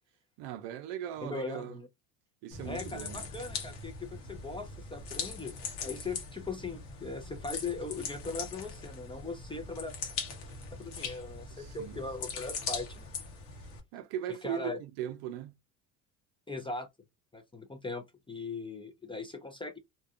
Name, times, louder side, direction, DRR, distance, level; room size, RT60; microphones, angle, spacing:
voice 1, 0.4-1.8 2.4-3.3 11.5-12.0 13.9-15.5, right 10 dB, 65° right, 0.6 m, -39 dB
voice 2, 1.2-1.9 2.6-5.5 5.8-9.9 10.7-13.1 14.3-14.8 16.5-16.9 17.3-19.8, left 3 dB, 10° left, 0.4 m, -39 dB
sound 1, 2.5-13.8, left 5 dB, 80° left, 1.1 m, -41 dB
2.6 x 2.2 x 2.4 m
hypercardioid pair, 80°, 46 cm